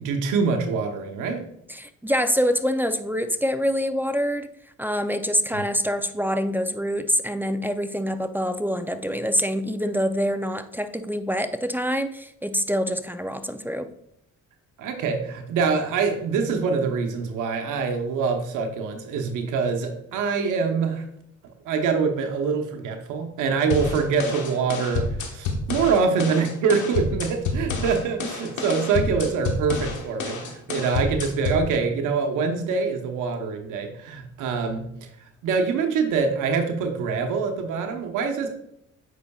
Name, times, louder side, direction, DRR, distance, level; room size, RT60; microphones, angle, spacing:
voice 1, 0.0-1.4 5.5-5.6 14.8-21.0 21.6-34.9 35.4-38.5, right 5 dB, 90° right, 4 dB, 0.9 m, -25 dB
voice 2, 1.7-4.5 4.8-13.9, equal, 5° right, 9 dB, 0.4 m, -25 dB
sound 1, 23.7-31.7, left 3 dB, 80° left, 1.3 m, -29 dB
8.1 x 5.6 x 2.3 m, 0.74 s
cardioid pair, 90°, 30 cm